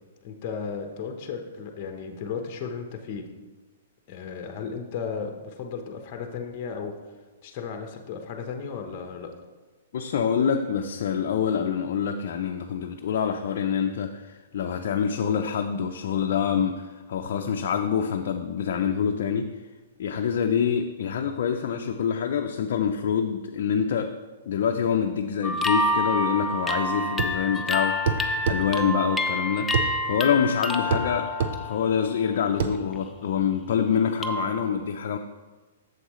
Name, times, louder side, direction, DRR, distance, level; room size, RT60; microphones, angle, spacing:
voice 1, 0.2-3.2 4.1-6.9 7.4-9.3, left 6 dB, 40° left, 4 dB, 0.9 m, -35 dB
voice 2, 9.9-19.5 20.0-24.1 24.5-29.7 30.0-31.3 31.6-35.2, left 7 dB, 60° left, 3 dB, 0.5 m, -26 dB
sound 1, 25.4-32.3 32.7-33.1 34.2-34.5, left 1 dB, 10° left, 0.5 m, -28 dB
sound 2, 27.2-27.4 28.1-28.6 29.7-29.9 30.9-31.1 31.4-31.6 32.6-32.8, right 6 dB, 55° right, 0.6 m, -25 dB
7.9 x 7.2 x 3.1 m, 1.3 s
hypercardioid pair, 145°, 0 cm